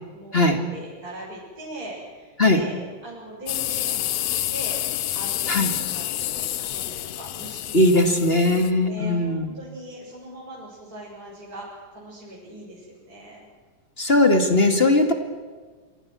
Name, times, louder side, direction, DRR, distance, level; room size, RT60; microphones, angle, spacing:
voice 1, 0.1-2.7 3.0-4.3 4.5-4.8 5.1-7.9 8.4-13.4, right 1 dB, 25° right, -7 dB, 7.4 m, -40 dB
sound 1, 3.5-8.7, left 13 dB, 75° left, 1.5 m, -28 dB
voice 2, 7.7-9.5 14.0-15.1, left 2 dB, 20° left, 6 dB, 1.8 m, -19 dB
28.0 x 25.5 x 6.3 m, 1.5 s
omnidirectional pair, 4.1 m